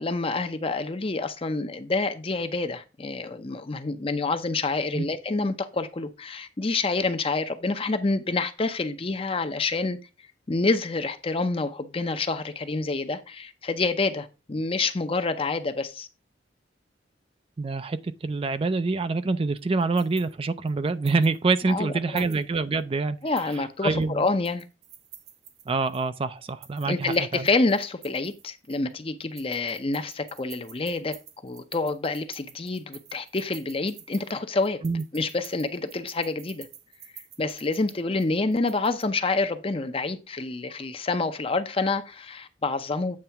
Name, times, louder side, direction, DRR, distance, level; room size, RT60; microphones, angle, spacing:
voice 1, 0.0-10.0 10.5-16.1 21.7-22.3 23.2-24.6 26.9-34.8 35.1-36.7 37.1-43.2, left 3 dB, 30° left, 0.6 m, -27 dB
voice 2, 17.6-23.2 23.8-24.2 25.7-27.5 34.8-35.0, right 3 dB, 30° right, 0.4 m, -26 dB
sound 1, 19.6-21.4 21.7-21.8 22.2-22.8 23.2-26.1 26.5-28.9 29.2-39.1, right 9 dB, 60° right, 1.2 m, -49 dB
8.7 x 3.3 x 5.7 m
head